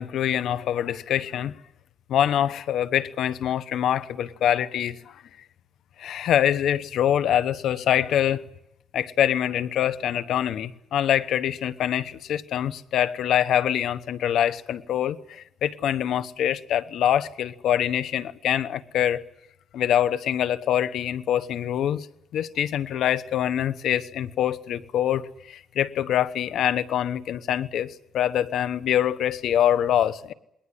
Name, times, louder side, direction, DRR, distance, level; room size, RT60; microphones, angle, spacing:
voice 1, 0.0-1.5 2.1-5.1 6.0-8.4 8.9-19.2 19.7-22.1 22.3-30.3, left 10 dB, 75° left, 15 dB, 1.0 m, -24 dB
21.0 x 18.5 x 10.0 m, 0.80 s
cardioid pair, 90°, 0 cm